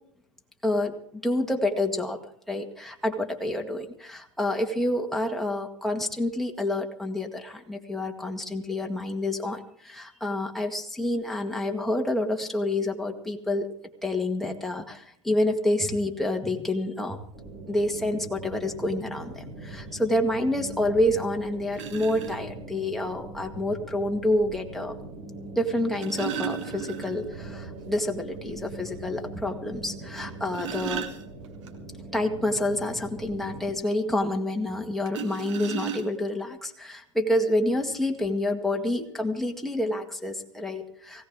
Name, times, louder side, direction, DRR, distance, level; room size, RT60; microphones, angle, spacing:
voice 1, 0.6-2.2 2.5-13.7 14.0-17.2 17.7-25.0 25.6-31.1 32.1-41.3, left 1 dB, ahead, 2 dB, 1.9 m, -28 dB
sound 1, 17.3-33.7, right 2 dB, 35° right, 6.7 m, -41 dB
sound 2, 21.0-21.1 21.7-22.4 23.8-23.9 25.7-27.4 27.7-27.8 28.2-28.3 28.9-29.0 30.2-31.7 35.1-36.4 37.3-37.4 37.7-38.0, right 9 dB, 70° right, 2.4 m, -35 dB
19.5 x 17.0 x 3.7 m, 0.69 s
hypercardioid pair, 105°, 16 cm